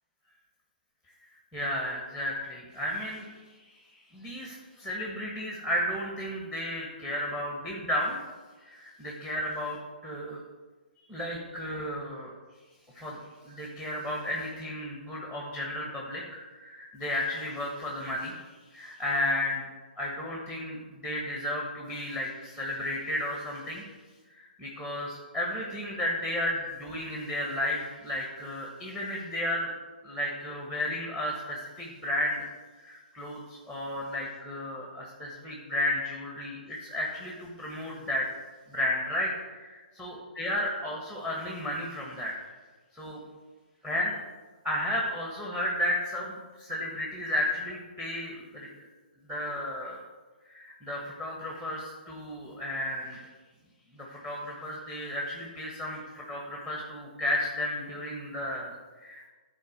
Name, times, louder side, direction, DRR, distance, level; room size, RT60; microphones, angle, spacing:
voice 1, 1.5-3.3 3.6-8.2 8.6-10.4 11.1-12.3 12.9-13.2 13.4-19.6 20.0-23.8 24.3-29.7 30.0-32.5 32.8-38.3 38.7-42.3 42.9-43.2 43.8-44.2 44.6-48.7 49.3-50.0 50.5-53.2 53.9-59.3, left 1 dB, 5° right, -2 dB, 1.5 m, -33 dB
11.5 x 4.5 x 6.6 m, 1.3 s
figure-of-eight pair, 135°, 5 cm